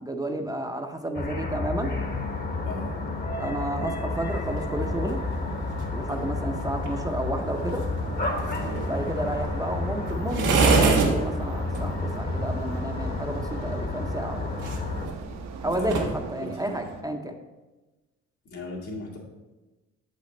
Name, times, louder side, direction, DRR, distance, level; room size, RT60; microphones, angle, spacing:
voice 1, 0.0-1.9 3.4-5.2 5.9-7.8 8.8-14.5 15.6-17.3, right 1 dB, 10° right, 4 dB, 0.6 m, -31 dB
sound 1, 1.1-15.1, left 3 dB, 30° left, 1.0 m, -31 dB
sound 2, 1.8-17.0, right 5 dB, 60° right, 0.8 m, -43 dB
sound 3, 4.1-16.2, right 4 dB, 90° right, 1.2 m, -30 dB
voice 2, 15.6-16.8 18.5-19.2, left 2 dB, 80° left, -4 dB, 2.1 m, -38 dB
7.5 x 5.2 x 3.8 m, 1.2 s
cardioid pair, 90°, 30 cm